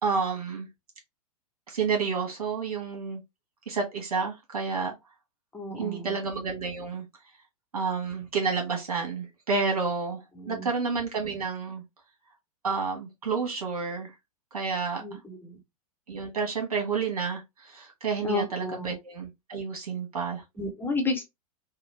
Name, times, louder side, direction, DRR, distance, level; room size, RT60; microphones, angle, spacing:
voice 1, 0.0-0.7 1.7-3.2 3.7-4.9 5.8-7.0 7.7-11.8 12.6-14.1 14.5-15.0 16.1-20.4, right 5 dB, 75° right, 1.7 m, -30 dB
voice 2, 5.5-6.2 10.4-10.7 15.0-15.6 18.2-18.9 20.6-21.2, left 2 dB, 10° left, 0.8 m, -32 dB
3.7 x 2.1 x 3.2 m
figure-of-eight pair, 105°, 19 cm